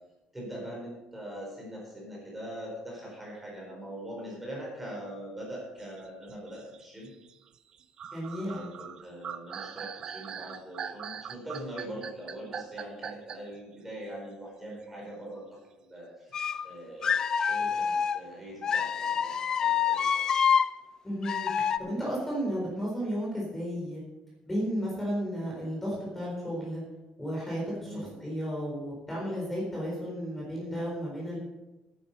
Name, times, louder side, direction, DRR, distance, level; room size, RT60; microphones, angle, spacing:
voice 1, 0.3-7.1 8.4-20.3 27.8-28.1, right 1 dB, 10° right, -3 dB, 4.4 m, -42 dB
sound 1, 5.8-13.6, right 8 dB, 40° right, 0.7 m, -41 dB
voice 2, 8.1-8.6 21.0-24.0 24.4-26.8 27.2-27.9 28.2-31.4, equal, 10° left, -4 dB, 4.2 m, -33 dB
sound 2, 16.3-16.6 17.0-18.2 18.6-20.7 21.2-21.8, left 7 dB, 30° left, 0.5 m, -27 dB
12.0 x 10.5 x 5.5 m, 1.0 s
cardioid pair, 175°, 2 cm